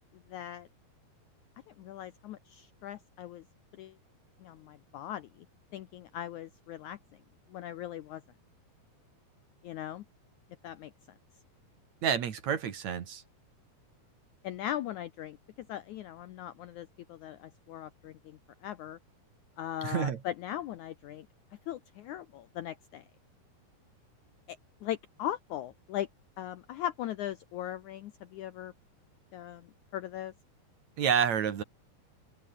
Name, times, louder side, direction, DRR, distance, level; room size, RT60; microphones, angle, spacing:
voice 1, 0.3-0.7 1.8-3.4 3.8-3.9 4.4-5.5 5.7-7.0 7.5-8.2 9.6-10.0 10.6-10.9 14.4-19.0 19.6-21.3 21.7-23.0 24.5-26.1 26.4-28.7 29.3-30.3, left 12 dB, 80° left, 1.8 m, -39 dB
voice 2, 12.0-13.2 19.8-20.2 31.0-31.6, right 8 dB, 55° right, 2.7 m, -29 dB
open air
omnidirectional pair, 4.4 m